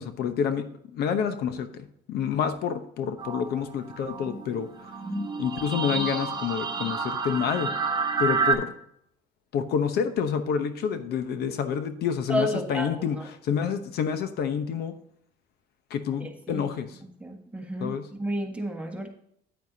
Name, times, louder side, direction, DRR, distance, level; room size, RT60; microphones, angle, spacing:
voice 1, 0.0-4.9 5.4-7.7 8.2-8.7 9.5-14.9 15.9-17.0 17.8-18.1, left 7 dB, 70° left, 9 dB, 0.9 m, -28 dB
sound 1, 3.2-8.5, right 5 dB, 25° right, 1.6 m, -29 dB
voice 2, 12.3-12.9 13.2-13.3 16.5-16.7 17.2-17.9 18.2-19.1, equal, 10° right, 1 dB, 1.8 m, -30 dB
9.3 x 9.2 x 2.8 m, 0.70 s
cardioid pair, 110°, 17 cm